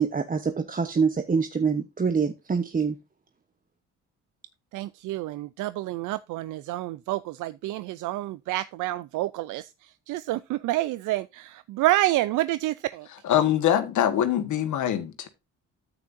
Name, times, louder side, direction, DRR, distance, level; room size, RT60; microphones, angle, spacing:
voice 1, 0.0-3.0, right 5 dB, 30° right, 1.0 m, -25 dB
voice 2, 4.7-13.1, right 16 dB, 85° right, 0.5 m, -28 dB
voice 3, 13.2-15.3, left 10 dB, 75° left, 1.5 m, -23 dB
9.7 x 8.9 x 2.6 m
cardioid pair, 90°, 30 cm